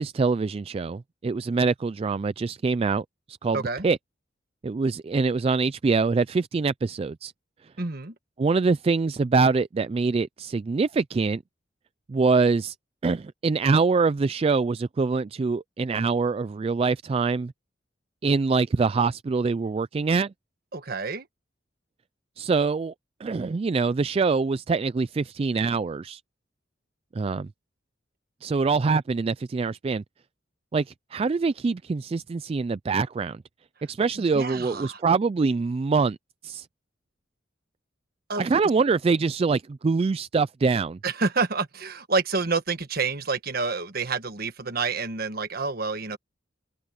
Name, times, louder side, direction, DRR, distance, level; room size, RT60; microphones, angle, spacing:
voice 1, 0.0-4.0 4.6-7.3 8.4-11.4 12.1-12.7 13.0-17.5 18.2-20.3 22.4-22.9 23.2-26.2 27.1-27.5 28.4-30.0 30.7-33.4 33.9-36.2 36.4-36.7 38.4-41.0, right 4 dB, 30° right, 0.3 m, -24 dB
voice 2, 3.5-3.9 7.8-8.1 20.7-21.3 34.2-35.0 38.3-38.5 41.0-46.2, right 4 dB, 50° right, 1.4 m, -28 dB
head